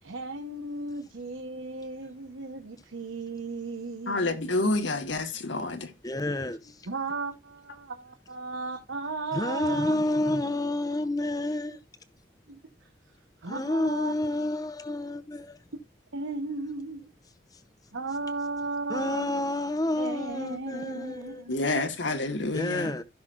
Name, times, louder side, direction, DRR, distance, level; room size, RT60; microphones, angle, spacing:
voice 1, 0.0-5.0 6.8-9.9 12.5-12.6 13.4-14.1 16.1-17.1 17.9-19.3 20.0-21.9, right 3 dB, 85° right, 1.0 m, -35 dB
voice 2, 4.1-5.9 21.5-23.0, left 2 dB, 70° left, 1.5 m, -28 dB
voice 3, 6.0-6.7 9.3-11.8 13.5-15.6 18.9-21.4 22.5-23.0, left 1 dB, 20° left, 0.7 m, -29 dB
15.5 x 5.9 x 2.5 m
head